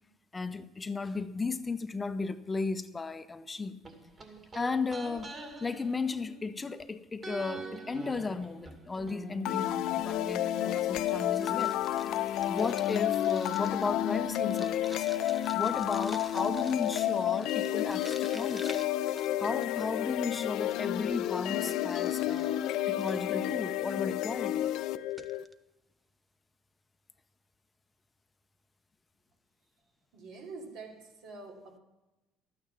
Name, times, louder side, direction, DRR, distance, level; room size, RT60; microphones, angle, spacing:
voice 1, 0.3-3.8 4.5-11.8 12.5-15.1 15.5-18.8 19.4-24.7, left 4 dB, 20° left, 0.7 m, -35 dB
sound 1, 3.8-6.8 7.2-11.0 11.3-11.4, right 3 dB, 35° right, 2.4 m, -45 dB
sound 2, 9.5-25.4, left 12 dB, 70° left, 0.4 m, -31 dB
sound 3, 11.3-19.9 20.4-23.6 24.3-24.5 24.8-24.9 25.1-25.5, right 2 dB, 15° right, 0.7 m, -51 dB
voice 2, 30.1-31.8, right 3 dB, 75° right, 2.8 m, -46 dB
12.5 x 9.0 x 5.7 m
cardioid pair, 105°, 0 cm